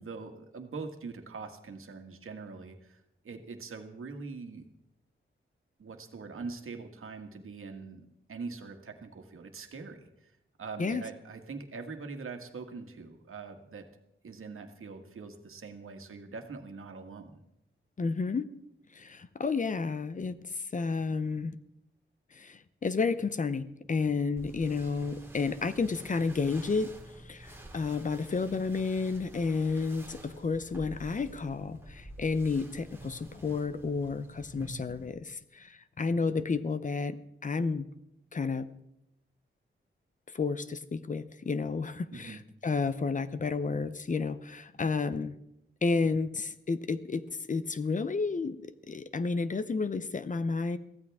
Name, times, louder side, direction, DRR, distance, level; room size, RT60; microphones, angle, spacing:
voice 1, 0.0-4.7 5.8-10.3 10.6-13.9 14.2-17.4 42.1-42.4, right 4 dB, 85° right, 5 dB, 1.8 m, -43 dB
voice 2, 18.0-18.5 18.9-21.6 22.3-37.2 37.4-37.9 38.3-38.7 40.3-45.4 45.8-50.8, left 4 dB, 40° left, 13 dB, 0.7 m, -31 dB
sound 1, 24.4-35.1, right 1 dB, 10° right, 2.2 m, -49 dB
23.0 x 15.5 x 3.6 m, 0.81 s
wide cardioid pair, 175°, 21 cm